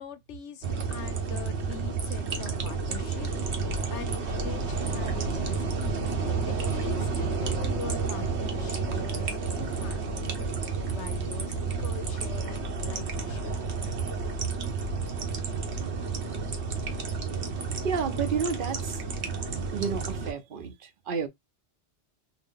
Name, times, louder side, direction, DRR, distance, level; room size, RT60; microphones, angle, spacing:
voice 1, 0.0-3.3 3.9-10.5 10.9-13.6, left 8 dB, 75° left, 1.0 m, -43 dB
sound 1, 0.6-20.3, right 4 dB, 70° right, 1.2 m, -31 dB
voice 2, 17.8-19.0 19.7-21.3, right 6 dB, 55° right, 0.8 m, -31 dB
3.9 x 2.2 x 3.6 m
omnidirectional pair, 1.2 m